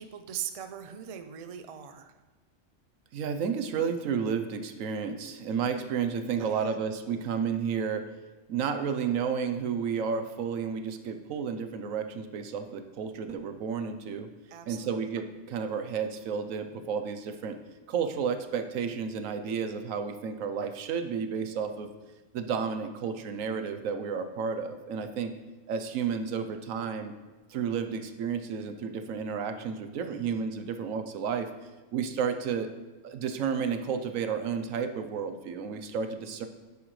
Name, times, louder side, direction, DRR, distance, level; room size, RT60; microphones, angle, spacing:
voice 1, 0.0-2.2 6.4-6.8 14.5-15.0 30.0-30.4, right 9 dB, 50° right, 8 dB, 0.4 m, -41 dB
voice 2, 3.1-8.1 8.5-14.3 14.7-17.6 17.9-21.9 22.3-25.3 25.7-27.1 27.5-31.5 31.9-32.7 33.0-36.5, right 6 dB, 90° right, 8 dB, 1.1 m, -31 dB
10.5 x 8.4 x 3.2 m, 1.2 s
omnidirectional pair, 1.3 m